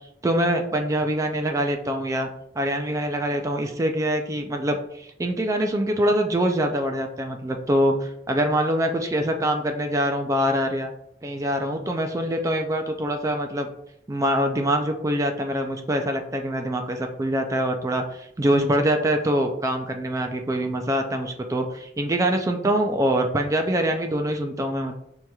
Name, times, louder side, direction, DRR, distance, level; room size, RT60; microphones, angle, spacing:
voice 1, 0.2-2.3 2.6-10.9 11.2-13.7 14.1-24.9, right 1 dB, 20° right, 5 dB, 0.3 m, -24 dB
6.1 x 2.8 x 2.3 m, 0.77 s
head